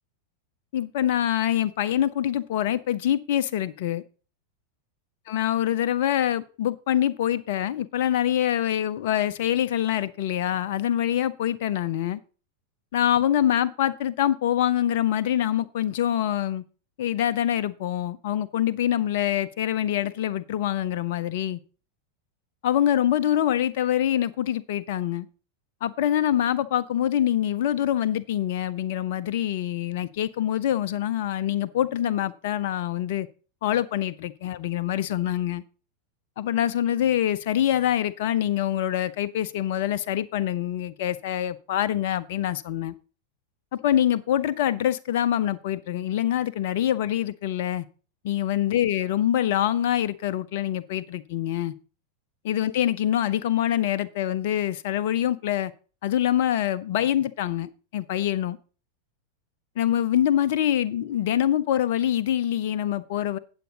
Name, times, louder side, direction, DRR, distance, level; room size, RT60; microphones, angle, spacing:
voice 1, 0.7-4.0 5.3-12.2 12.9-16.6 17.0-21.6 22.6-25.3 25.8-33.3 33.6-35.6 36.4-42.9 43.8-47.9 48.2-51.7 52.4-55.7 56.0-58.6 59.8-63.4, left 11 dB, 50° left, 0.6 m, -25 dB
9.2 x 8.0 x 4.0 m
figure-of-eight pair, 90°, 0 cm